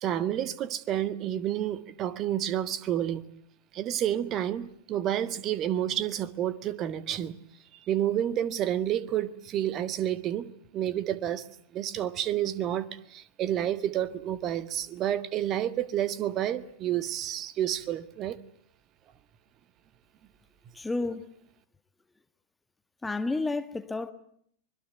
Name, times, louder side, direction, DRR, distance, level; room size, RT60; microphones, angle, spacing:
voice 1, 0.0-3.2 3.8-7.4 7.9-11.4 11.7-12.9 13.1-18.4, right 11 dB, 35° right, 1.6 m, -29 dB
voice 2, 20.7-21.3 23.0-24.1, left 3 dB, 10° left, 1.5 m, -30 dB
25.0 x 22.0 x 9.2 m
figure-of-eight pair, 90°, 0 cm